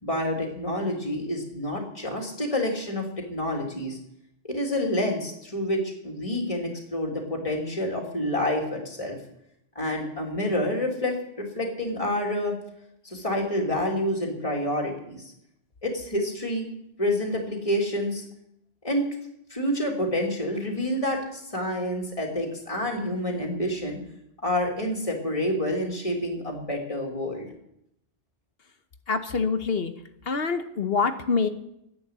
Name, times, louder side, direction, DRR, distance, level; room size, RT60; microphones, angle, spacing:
voice 1, 0.0-4.0 4.4-9.2 9.7-12.5 13.0-15.3 15.8-16.7 17.0-18.2 18.8-19.1 19.5-24.0 24.4-27.5, left 1 dB, 30° left, 0 dB, 2.9 m, -28 dB
voice 2, 29.1-29.9 30.2-31.5, left 5 dB, 55° left, 9 dB, 1.2 m, -25 dB
11.5 x 10.5 x 8.1 m, 0.78 s
omnidirectional pair, 1.2 m